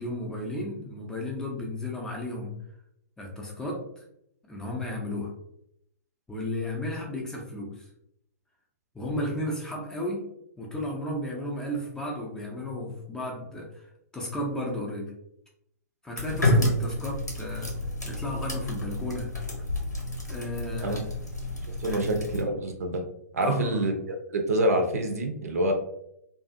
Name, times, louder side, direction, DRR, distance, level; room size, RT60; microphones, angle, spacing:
voice 1, 0.0-2.6 3.2-4.0 4.5-5.3 6.3-7.9 8.9-10.3 10.6-13.9 14.1-15.1 16.0-17.7 18.0-19.3 20.3-21.1 21.9-22.3 23.4-23.8, left 1 dB, 5° left, -2 dB, 0.5 m, -34 dB
sound 1, 16.2-22.4, left 1 dB, 85° left, 0.8 m, -29 dB
voice 2, 21.8-23.0 23.3-23.9 24.3-25.7, right 1 dB, 60° right, 4 dB, 0.5 m, -26 dB
2.5 x 2.3 x 2.5 m, 0.76 s
figure-of-eight pair, 115°, 9 cm